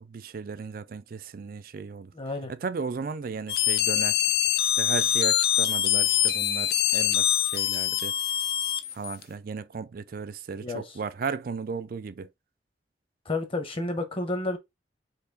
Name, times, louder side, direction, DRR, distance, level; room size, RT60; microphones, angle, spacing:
voice 1, 0.0-2.1 2.5-4.2 4.6-8.1 8.9-12.3, right 5 dB, 55° right, 0.4 m, -35 dB
voice 2, 2.1-2.5 10.6-11.0 13.2-14.6, left 2 dB, 30° left, 1.0 m, -31 dB
sound 1, 3.5-9.2, left 11 dB, 60° left, 0.5 m, -24 dB
4.4 x 2.9 x 3.9 m
head